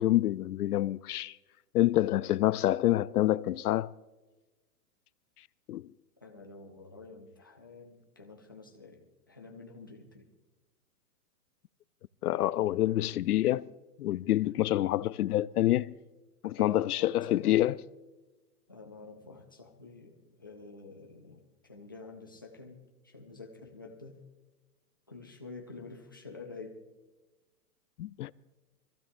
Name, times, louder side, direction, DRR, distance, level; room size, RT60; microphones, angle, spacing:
voice 1, 0.0-1.4 1.7-3.9 5.7-5.9 12.2-13.7 14.0-15.9 16.4-17.8 28.0-28.3, left 14 dB, 70° left, 0.5 m, -27 dB
voice 2, 6.2-10.3 16.6-17.6 18.7-24.2 25.1-26.8, left 3 dB, 15° left, 0.4 m, -49 dB
23.0 x 15.0 x 2.6 m
hypercardioid pair, 160°, 46 cm